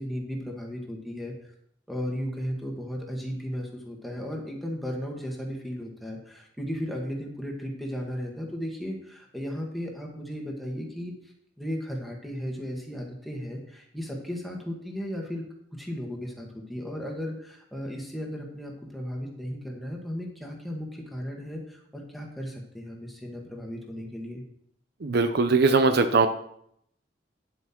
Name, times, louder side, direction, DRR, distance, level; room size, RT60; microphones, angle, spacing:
voice 1, 0.0-1.4 1.9-11.1 11.6-15.4 15.8-24.4, equal, ahead, 0 dB, 1.8 m, -35 dB
voice 2, 25.0-26.3, right 4 dB, 60° right, 9 dB, 0.6 m, -21 dB
9.6 x 7.8 x 4.5 m, 0.70 s
head